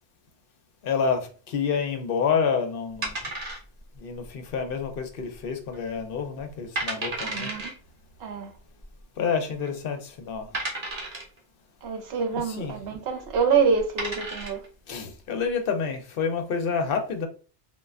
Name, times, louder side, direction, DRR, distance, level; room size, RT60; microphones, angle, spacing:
voice 1, 0.8-3.1 4.0-7.5 9.2-10.5 12.3-12.8 14.9-17.3, left 6 dB, 60° left, 0.7 m, -28 dB
sound 1, 3.0-4.0 4.2-4.3 4.9-5.4 5.7-5.8 6.4-6.5 6.8-7.7 8.8-8.9 9.6-9.7 10.5-11.4 13.2-13.4 13.8-14.7, right 2 dB, 40° right, 0.9 m, -32 dB
voice 2, 7.2-7.7 8.2-8.5 11.8-14.6, right 5 dB, 65° right, 0.9 m, -26 dB
3.1 x 2.2 x 2.3 m
omnidirectional pair, 1.2 m